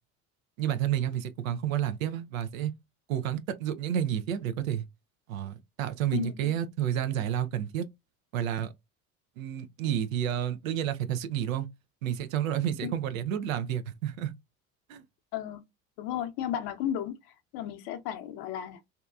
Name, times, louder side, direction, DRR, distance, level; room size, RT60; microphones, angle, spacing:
voice 1, 0.6-2.7 3.1-4.9 5.3-7.8 8.3-8.7 9.4-11.7 12.0-14.3 14.9-15.0, right 10 dB, 90° right, 0.5 m, -30 dB
voice 2, 6.1-6.5 12.8-12.9 15.3-15.6 16.0-17.1 17.5-18.9, left 10 dB, 65° left, 0.7 m, -33 dB
2.7 x 2.3 x 2.3 m
hypercardioid pair, 70°, 39 cm